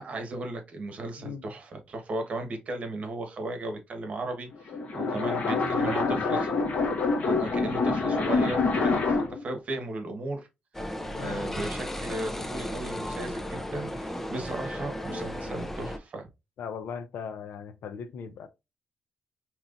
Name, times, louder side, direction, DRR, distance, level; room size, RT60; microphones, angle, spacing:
voice 1, 0.0-6.5 7.2-10.5 10.9-16.3, right 2 dB, 45° right, 1.2 m, -36 dB
sound 1, 4.5-9.4, left 4 dB, 50° left, 1.2 m, -26 dB
voice 2, 5.1-6.5 9.1-9.2 11.1-11.5 16.6-18.5, left 7 dB, 85° left, 0.6 m, -37 dB
sound 2, 10.7-16.0, left 1 dB, 10° left, 0.5 m, -35 dB
5.5 x 2.9 x 2.5 m
cardioid pair, 140°, 3 cm